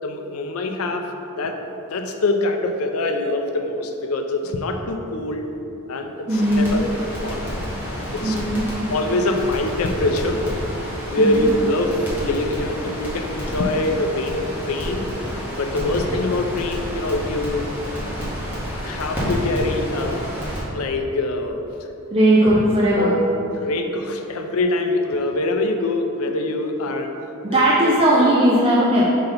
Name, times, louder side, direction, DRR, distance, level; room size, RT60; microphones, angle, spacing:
voice 1, 0.0-1.1 1.4-1.6 1.9-5.5 5.9-7.4 7.7-7.8 8.1-8.4 8.9-10.5 10.8-15.1 15.5-17.7 18.8-20.2 20.7-21.7 22.4-22.5 23.0-23.3 23.5-27.1 27.5-28.0, left 2 dB, 75° left, 5 dB, 0.5 m, -24 dB
Crackle, 6.3-20.6, equal, 10° right, 1.5 m, -29 dB
voice 2, 6.3-6.8 8.2-8.6 11.2-11.4 22.1-23.1 27.4-29.0, right 1 dB, 25° right, -5 dB, 0.5 m, -17 dB
5.7 x 5.6 x 3.9 m, 2.9 s
head